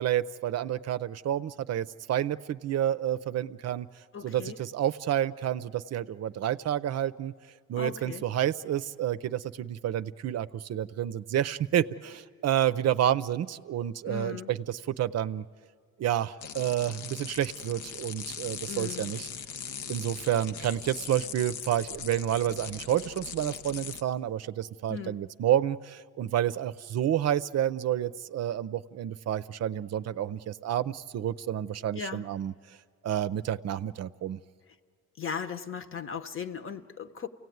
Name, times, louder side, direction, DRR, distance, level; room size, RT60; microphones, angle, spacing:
voice 1, 0.0-3.9 4.2-7.3 7.7-15.4 16.0-19.3 19.9-32.5 33.0-34.4, right 11 dB, 55° right, 14 dB, 0.6 m, -29 dB
voice 2, 4.1-4.6 7.8-8.2 14.0-14.5 18.7-19.1 24.9-25.2 32.0-32.2 35.2-37.3, left 6 dB, 45° left, 10 dB, 1.0 m, -37 dB
sound 1, 16.4-24.0, left 7 dB, 80° left, 0.8 m, -40 dB
28.5 x 17.0 x 9.4 m, 2.1 s
cardioid pair, 90°, 30 cm